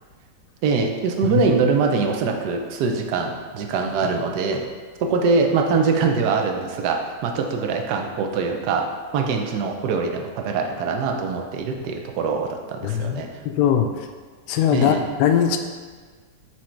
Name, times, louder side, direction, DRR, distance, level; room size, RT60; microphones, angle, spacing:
voice 1, 0.6-4.6 5.0-8.9 9.1-13.3 14.7-15.0, right 4 dB, 70° right, 3 dB, 1.2 m, -23 dB
voice 2, 12.8-14.1 14.5-15.6, left 8 dB, 75° left, 6 dB, 1.1 m, -21 dB
6.2 x 4.2 x 4.5 m, 1.5 s
omnidirectional pair, 1.9 m